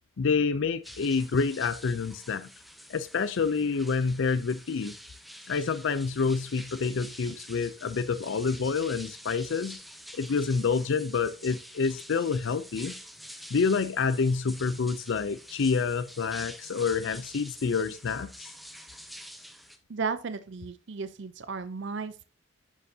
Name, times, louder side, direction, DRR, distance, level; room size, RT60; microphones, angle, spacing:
voice 1, 0.2-2.5 2.9-4.9 5.5-9.8 10.1-12.9 13.5-18.5, left 5 dB, 60° left, 0.4 m, -28 dB
sound 1, 0.8-19.8, equal, ahead, 0.6 m, -47 dB
voice 2, 19.9-22.2, right 4 dB, 55° right, 0.5 m, -34 dB
10.5 x 6.8 x 2.7 m
head